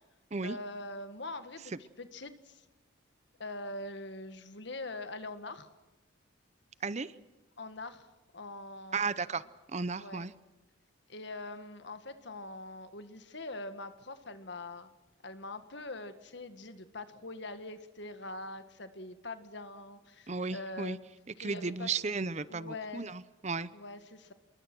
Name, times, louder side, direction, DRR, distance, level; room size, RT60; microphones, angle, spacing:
voice 1, 0.4-2.7 3.4-5.7 7.6-8.1 8.3-9.1 10.0-10.3 11.1-14.9 15.2-21.0 21.4-22.1 22.5-23.1 23.7-24.3, left 2 dB, 55° left, 10 dB, 1.8 m, -43 dB
voice 2, 6.8-7.1 8.9-9.4 9.7-10.3 20.3-21.0 21.4-23.7, right 4 dB, 35° right, 16 dB, 0.6 m, -34 dB
27.0 x 22.5 x 6.2 m, 1.1 s
head